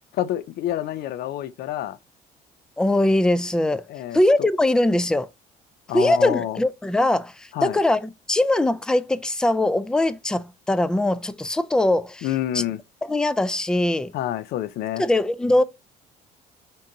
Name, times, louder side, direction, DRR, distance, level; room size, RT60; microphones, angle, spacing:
voice 1, 0.1-2.0 3.9-4.5 5.9-6.6 7.5-7.8 12.2-12.8 14.1-15.0, left 12 dB, 70° left, 0.5 m, -28 dB
voice 2, 2.8-3.8 4.1-5.3 5.9-12.3 12.5-12.6 13.0-14.1 15.0-15.6, left 1 dB, 5° left, 0.3 m, -21 dB
3.8 x 3.7 x 2.6 m
cardioid pair, 110°, 17 cm